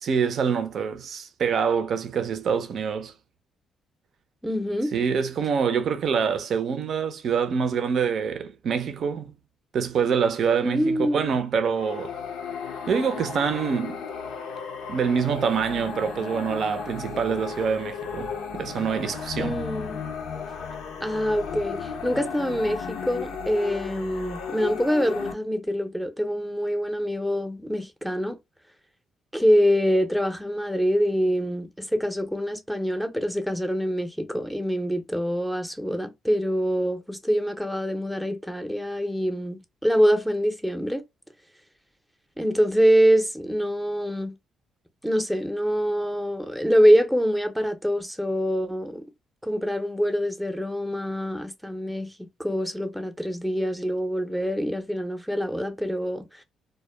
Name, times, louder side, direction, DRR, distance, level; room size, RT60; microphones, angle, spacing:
voice 1, 0.0-3.1 4.9-9.3 9.7-12.1 12.9-14.0 14.9-19.6, right 6 dB, 60° right, 0.5 m, -25 dB
voice 2, 4.4-4.9 10.6-11.3 19.4-20.0 21.0-28.4 29.3-41.0 42.4-44.4 45.0-49.1 49.4-56.4, equal, ahead, 0.6 m, -25 dB
sound 1, 11.7-25.3, left 6 dB, 90° left, 0.6 m, -35 dB
2.1 x 2.1 x 3.2 m
cardioid pair, 90°, 0 cm